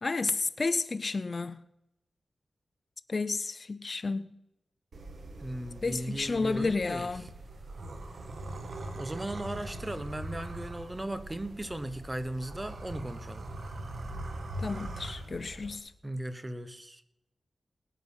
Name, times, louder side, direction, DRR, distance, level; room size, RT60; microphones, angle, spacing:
voice 1, 0.0-1.6 3.1-4.3 5.8-7.2 14.6-15.9, left 3 dB, 45° left, 0.6 m, -31 dB
sound 1, 4.9-15.8, right 1 dB, 70° right, 1.8 m, -42 dB
voice 2, 5.4-7.1 9.0-13.5 16.0-17.0, right 1 dB, 20° right, 1.1 m, -37 dB
19.5 x 8.3 x 5.5 m
wide cardioid pair, 75°, 0 cm